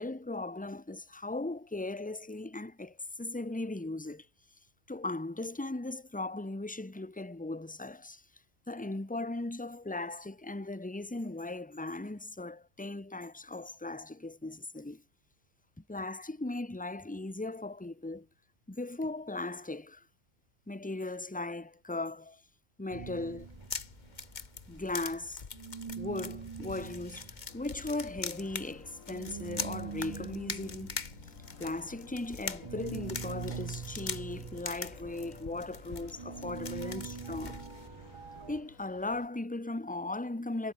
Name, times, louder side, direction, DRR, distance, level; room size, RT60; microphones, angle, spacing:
voice 1, 0.0-4.3 4.9-8.2 8.7-15.0 15.9-18.3 18.7-20.1 20.7-22.4 22.8-23.5 24.7-25.4 26.0-30.9 31.6-37.6 38.5-40.7, left 2 dB, 5° left, 1.3 m, -38 dB
sound 1, 22.9-25.3 25.5-38.6, right 5 dB, 40° right, 0.4 m, -44 dB
sound 2, 23.4-37.9, left 5 dB, 35° left, 1.2 m, -43 dB
sound 3, 27.5-39.3, left 5 dB, 75° left, 2.5 m, -55 dB
omnidirectional pair, 1.4 m